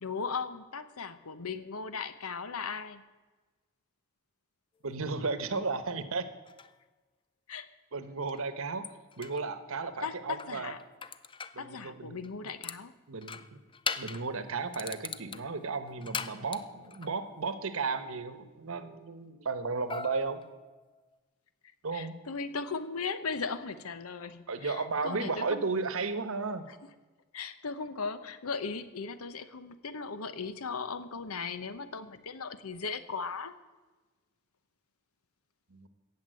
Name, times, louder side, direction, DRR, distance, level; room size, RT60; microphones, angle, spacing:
voice 1, 0.0-3.0 7.5-7.7 10.0-10.8 11.6-12.9 21.9-25.7 27.3-33.5, left 5 dB, 85° left, 12 dB, 0.9 m, -37 dB
voice 2, 4.8-6.3 7.9-8.9 9.2-10.7 11.5-12.2 13.1-13.6 14.0-20.4 21.8-22.1 24.5-26.7 35.7-35.9, right 4 dB, 70° right, 11 dB, 1.1 m, -34 dB
sound 1, 6.5-6.7 8.3-8.4 8.8-9.5 10.4-11.6 12.2-12.8 13.2-14.3 14.7-17.1 19.9-21.2, left 5 dB, 25° left, 0.5 m, -40 dB
17.5 x 7.3 x 7.6 m, 1.3 s
head